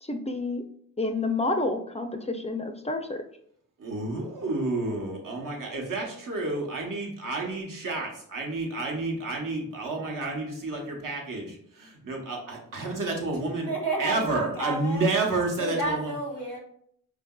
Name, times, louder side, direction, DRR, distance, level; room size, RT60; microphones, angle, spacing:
voice 1, 0.0-0.6 1.0-3.2, left 2 dB, 20° left, 6 dB, 0.3 m, -29 dB
voice 2, 3.8-13.7 14.0-16.1, right 2 dB, 70° right, 0 dB, 0.9 m, -30 dB
voice 3, 13.7-15.1 15.6-16.6, right 2 dB, 85° right, -3 dB, 1.4 m, -31 dB
4.6 x 2.6 x 2.2 m, 0.66 s
cardioid pair, 65°, 34 cm